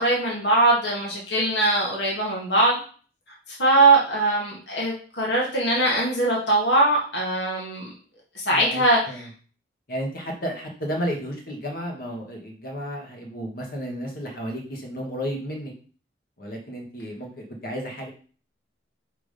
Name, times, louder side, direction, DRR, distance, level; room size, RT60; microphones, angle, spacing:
voice 1, 0.0-2.8 3.6-7.9 8.3-9.3, right 2 dB, 75° left, -3 dB, 1.7 m, -21 dB
voice 2, 8.5-9.3 9.9-15.7 16.4-18.1, equal, 55° left, 1 dB, 1.5 m, -32 dB
4.9 x 3.7 x 5.2 m, 0.41 s
head